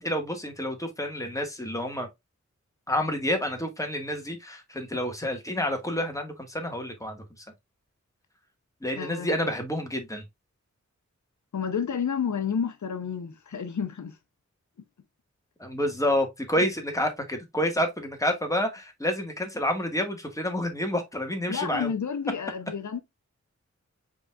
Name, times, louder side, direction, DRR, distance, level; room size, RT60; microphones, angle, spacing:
voice 1, 0.0-2.1 2.9-7.2 8.8-10.2 15.6-21.9, left 1 dB, 10° left, 1.4 m, -29 dB
voice 2, 9.0-9.5 11.5-14.2 16.6-16.7 21.5-23.0, left 7 dB, 80° left, 0.7 m, -30 dB
5.0 x 3.8 x 2.3 m
wide cardioid pair, 85°, 29 cm